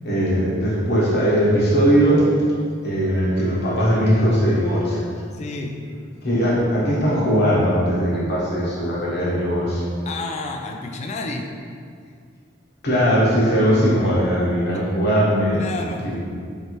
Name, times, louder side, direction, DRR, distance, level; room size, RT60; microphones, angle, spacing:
voice 1, 0.0-2.3 2.8-5.1 6.2-9.8 12.8-15.7 16.0-16.2, equal, 60° left, -6 dB, 1.0 m, -19 dB
voice 2, 5.3-5.8 10.1-11.5 14.7-14.8 15.5-16.1, left 3 dB, 35° left, 3 dB, 0.3 m, -30 dB
4.1 x 3.3 x 3.0 m, 2.2 s
head